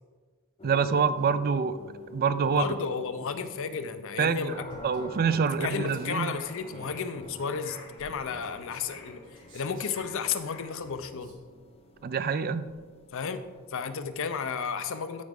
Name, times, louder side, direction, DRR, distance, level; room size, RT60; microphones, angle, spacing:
sound 1, 0.6-14.5, left 2 dB, 30° left, 0.8 m, -48 dB
voice 1, 0.6-1.8 2.1-2.6 4.2-6.4 12.0-12.7, right 6 dB, 45° right, 13 dB, 0.4 m, -26 dB
voice 2, 2.4-4.5 5.6-9.2 9.5-11.3 13.1-13.4 13.7-15.2, left 6 dB, 65° left, 10 dB, 0.6 m, -33 dB
Male speech man speaking, 4.7-6.1 6.7-10.2 10.7-11.4, right 1 dB, 65° right, 2.1 m, -52 dB
sound 2, 5.7-11.0, left 5 dB, 85° left, 2.3 m, -52 dB
13.5 x 4.9 x 3.6 m, 1.5 s
head